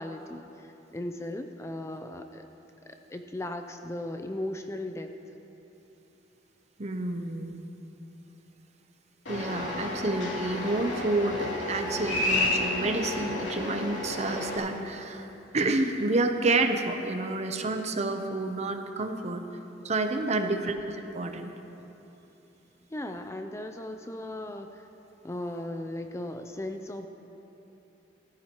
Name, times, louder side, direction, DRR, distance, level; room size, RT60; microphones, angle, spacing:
voice 1, 0.0-2.4 2.8-5.1 20.3-20.7 22.9-24.9 25.2-27.1, left 1 dB, 15° left, 6 dB, 0.4 m, -37 dB
voice 2, 6.8-7.7 9.3-15.3 15.5-19.4 19.8-20.7 21.1-21.5, right 2 dB, 35° right, 6 dB, 0.7 m, -29 dB
sound 1, 9.3-14.6, left 1 dB, 85° left, 2.8 m, -31 dB
15.0 x 14.5 x 3.0 m, 3.0 s
head